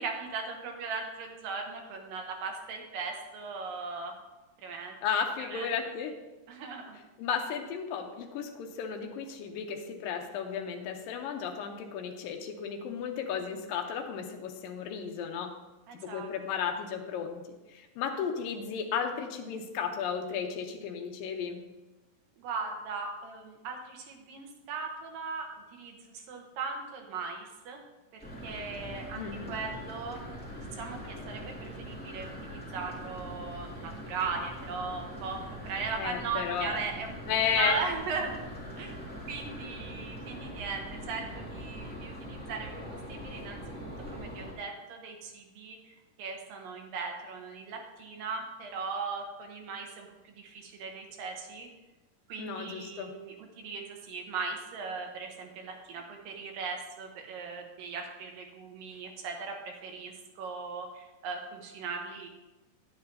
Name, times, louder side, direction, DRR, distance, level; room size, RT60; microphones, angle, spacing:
voice 1, 0.0-4.1 4.6-5.0 5.4-5.7 6.5-7.0 15.9-16.3 22.4-27.8 28.1-30.2 30.5-37.2 37.5-38.4 38.8-39.0 39.3-42.7 43.1-43.6 44.1-51.7 52.3-62.3, right 4 dB, 75° right, 2 dB, 2.7 m, -38 dB
voice 2, 5.0-6.2 7.2-15.6 15.9-21.6 29.2-29.6 36.0-36.7 37.3-37.8 52.4-53.1, left 7 dB, 80° left, 4 dB, 2.5 m, -34 dB
sound 1, 28.2-44.5, equal, 10° left, 0.5 m, -42 dB
9.7 x 9.2 x 2.7 m, 1.1 s
omnidirectional pair, 4.2 m